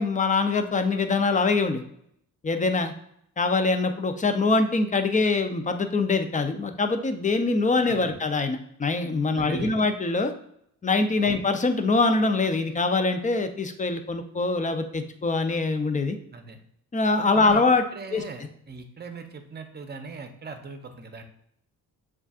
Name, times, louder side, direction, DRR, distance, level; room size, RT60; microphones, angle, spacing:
voice 1, 0.0-1.8 2.4-2.9 3.4-10.3 10.8-16.2 16.9-17.8 18.1-18.2, left 3 dB, 20° left, 8 dB, 0.6 m, -24 dB
voice 2, 7.8-8.2 9.3-9.9 11.2-11.4 16.3-16.6 17.4-17.6 17.9-21.2, right 4 dB, 25° right, 6 dB, 0.7 m, -40 dB
7.0 x 2.5 x 2.4 m, 0.71 s
cardioid pair, 80°, 37 cm